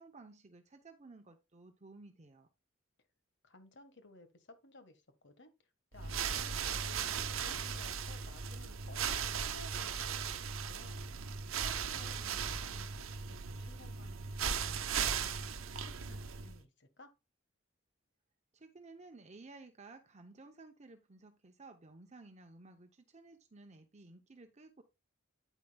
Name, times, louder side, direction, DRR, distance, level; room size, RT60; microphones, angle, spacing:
voice 1, 0.0-2.5 18.5-24.8, right 3 dB, 35° right, 0.8 m, -55 dB
voice 2, 3.4-5.5 5.9-11.1 11.5-14.3 14.6-15.6 15.8-17.1, left 2 dB, 60° left, 1.6 m, -57 dB
sound 1, 5.9-16.6, right 7 dB, 80° right, 0.9 m, -37 dB
9.2 x 9.0 x 2.3 m
head